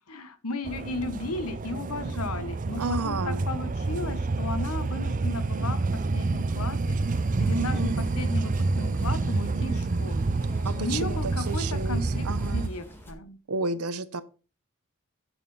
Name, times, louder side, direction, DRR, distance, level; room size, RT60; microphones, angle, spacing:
voice 1, 0.1-13.4, left 2 dB, 80° left, 1.3 m, -35 dB
sound 1, 0.7-12.7, right 3 dB, 35° right, 0.5 m, -28 dB
voice 2, 2.8-3.5 7.5-8.0 9.3-9.9 10.6-12.7 13.5-14.2, right 3 dB, 85° right, 1.0 m, -32 dB
sound 2, 7.0-13.1, equal, 10° left, 2.0 m, -47 dB
8.5 x 7.2 x 5.6 m
head